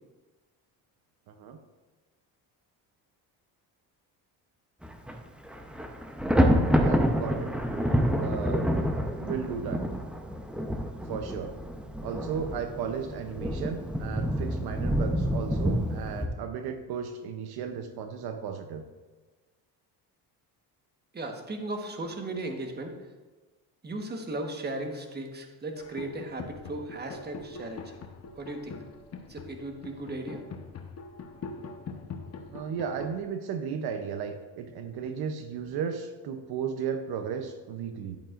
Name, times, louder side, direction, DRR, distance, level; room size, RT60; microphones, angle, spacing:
voice 1, 1.3-1.6 6.8-7.5 8.2-8.7 9.2-9.9 11.0-11.5 12.0-18.8 32.5-38.2, right 7 dB, 70° right, 7 dB, 0.8 m, -35 dB
Thunder, 4.8-5.1 5.4-16.3, equal, 5° right, 0.7 m, -28 dB
voice 2, 21.1-22.9 23.8-27.8 28.3-28.8 29.3-30.4, right 2 dB, 25° right, 4 dB, 1.3 m, -36 dB
sound 1, 25.8-33.2, left 4 dB, 40° left, 0.9 m, -43 dB
11.0 x 8.9 x 2.5 m, 1.2 s
cardioid pair, 105°, 39 cm